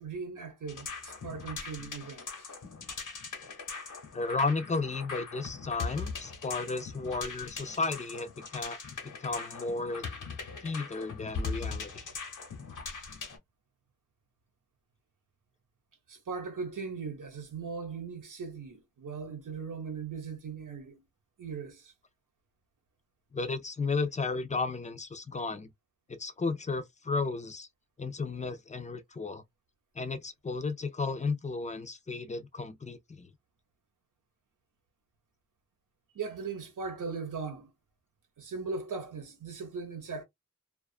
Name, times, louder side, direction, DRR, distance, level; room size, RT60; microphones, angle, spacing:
voice 1, 0.0-2.5 16.1-21.0 21.4-21.9 36.1-37.7 38.4-40.2, right 5 dB, 85° right, 0.9 m, -39 dB
sound 1, 0.7-13.4, left 4 dB, 85° left, 0.9 m, -40 dB
voice 2, 4.1-8.8 9.2-10.0 10.6-11.9 23.3-25.7 26.1-27.7 28.0-29.4 30.0-33.3, left 3 dB, 25° left, 0.4 m, -33 dB
2.4 x 2.3 x 2.4 m
wide cardioid pair, 105°, 30 cm